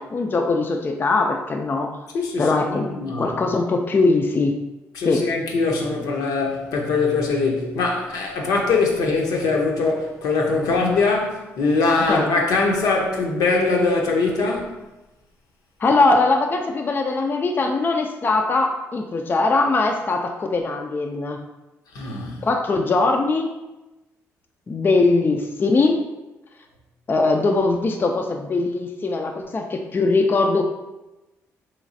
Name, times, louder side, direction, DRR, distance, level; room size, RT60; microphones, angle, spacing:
voice 1, 0.0-2.0 2.4-2.9 3.2-4.6 5.0-5.2 12.1-12.3 15.8-21.4 22.4-23.5 24.7-26.1 27.1-30.6, left 3 dB, 30° left, 0.3 m, -21 dB
voice 2, 2.1-3.3 4.9-14.8 21.9-22.4, left 3 dB, 75° left, 0.6 m, -22 dB
3.2 x 3.1 x 2.5 m
supercardioid pair, 55°, 6 cm